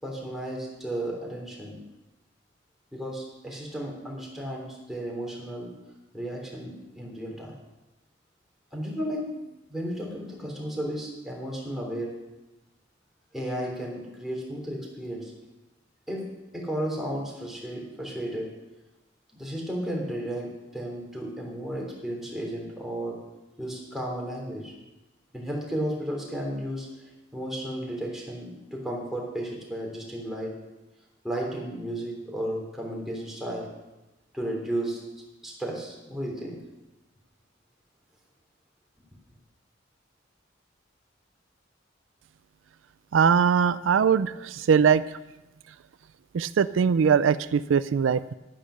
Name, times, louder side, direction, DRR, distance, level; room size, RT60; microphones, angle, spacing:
voice 1, 0.0-1.8 2.9-5.7 6.1-7.5 8.7-12.1 13.3-15.3 16.1-16.2 16.5-18.5 19.4-23.2 23.6-24.7 25.3-26.9 27.3-30.5 31.2-33.7 34.3-35.0 35.4-36.6, right 1 dB, ahead, -2 dB, 3.3 m, -33 dB
voice 2, 43.1-45.0 46.3-48.3, right 7 dB, 85° right, 15 dB, 0.4 m, -21 dB
10.5 x 10.0 x 6.4 m, 1.0 s
head